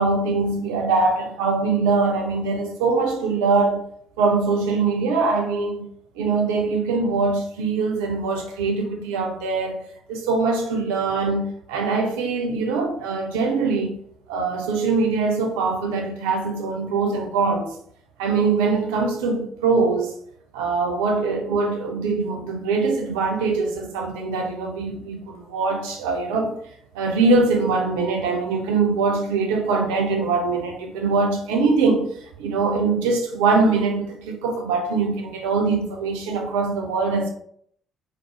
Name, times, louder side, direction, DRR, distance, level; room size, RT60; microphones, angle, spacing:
voice 1, 0.0-3.8 4.2-5.9 6.2-9.8 10.1-14.0 14.3-17.7 18.2-20.1 20.5-26.6 26.9-32.1 32.4-37.3, right 4 dB, 70° right, 0.4 m, -22 dB
2.5 x 2.0 x 2.7 m
figure-of-eight pair, 45°, 0 cm